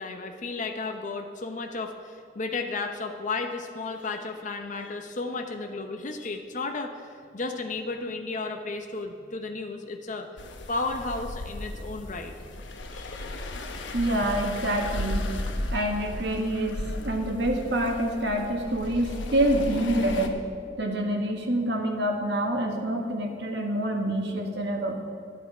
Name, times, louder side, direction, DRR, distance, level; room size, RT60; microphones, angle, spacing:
voice 1, 0.0-10.3 10.7-12.4 12.9-13.3, left 3 dB, 45° left, 4 dB, 0.7 m, -33 dB
sound 1, 10.4-20.3, left 1 dB, 85° left, 1.0 m, -35 dB
voice 2, 13.9-15.3 15.7-20.4 20.8-25.0, right 1 dB, 65° right, 2 dB, 1.6 m, -27 dB
11.5 x 9.6 x 4.9 m, 2.4 s
head